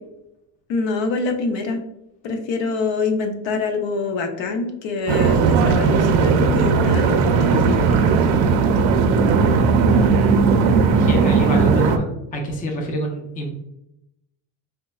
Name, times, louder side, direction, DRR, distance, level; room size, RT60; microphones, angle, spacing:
voice 1, 0.7-1.8 2.2-8.0, left 4 dB, 65° left, 4 dB, 0.7 m, -25 dB
sound 1, 5.1-12.0, right 5 dB, 75° right, 0.6 m, -17 dB
voice 2, 10.9-13.5, right 1 dB, 20° left, 1 dB, 0.4 m, -27 dB
5.1 x 2.2 x 2.3 m, 0.85 s
cardioid pair, 145°, 48 cm